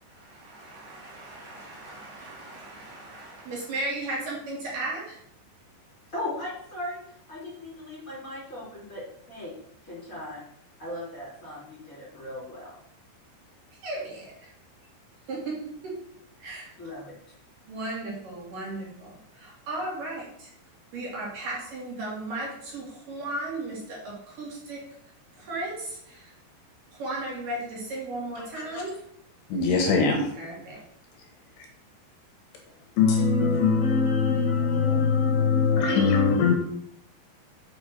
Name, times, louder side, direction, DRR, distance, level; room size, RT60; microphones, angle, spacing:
voice 1, 0.0-5.2 13.8-14.5 15.3-15.6 15.8-16.0 16.4-16.7 17.7-20.5 20.9-24.8 25.3-26.3 26.9-29.0 30.3-30.8, right 2 dB, 50° right, 3.5 m, -36 dB
voice 2, 6.1-7.0 7.3-9.0 9.3-9.5 9.9-10.4 10.8-12.7 16.8-17.1, left 1 dB, 20° left, 2.8 m, -37 dB
voice 3, 29.5-30.2 33.0-36.5, left 5 dB, 70° left, 3.1 m, -22 dB
7.2 x 5.9 x 6.7 m
omnidirectional pair, 5.4 m